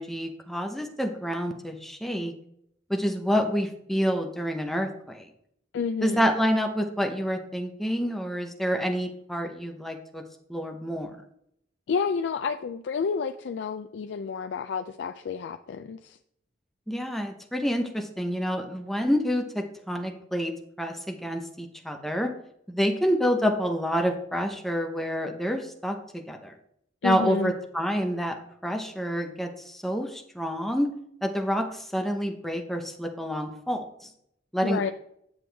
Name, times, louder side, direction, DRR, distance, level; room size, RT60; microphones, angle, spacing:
voice 1, 0.0-2.3 2.9-5.3 6.0-10.2 10.5-11.1 16.9-20.5 20.8-22.3 22.7-26.0 26.3-26.5 27.0-28.4 28.6-30.9 31.2-33.8 34.5-34.9, equal, ahead, 3 dB, 0.7 m, -28 dB
voice 2, 5.7-6.3 11.9-16.2 27.0-27.5 34.6-34.9, left 5 dB, 70° left, 7 dB, 0.3 m, -30 dB
7.9 x 6.9 x 3.4 m, 0.72 s
head